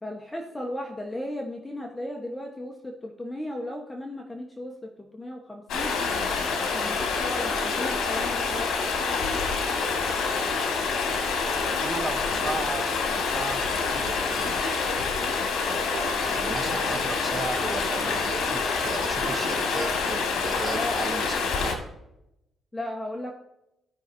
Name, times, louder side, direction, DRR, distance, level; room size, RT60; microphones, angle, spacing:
voice 1, 0.0-6.0 6.6-8.7 20.7-21.0 22.7-23.3, left 1 dB, 10° left, 1 dB, 1.2 m, -36 dB
Stream, 5.7-21.7, left 4 dB, 75° left, 1.9 m, -27 dB
voice 2, 11.5-12.9 13.1-14.9 16.2-21.8, right 3 dB, 30° right, 6 dB, 0.9 m, -36 dB
sound 1, 15.9-16.3 18.3-18.9 19.2-20.0, right 6 dB, 60° right, 1.6 m, -39 dB
15.5 x 5.7 x 2.7 m, 0.87 s
cardioid pair, 90°, 0 cm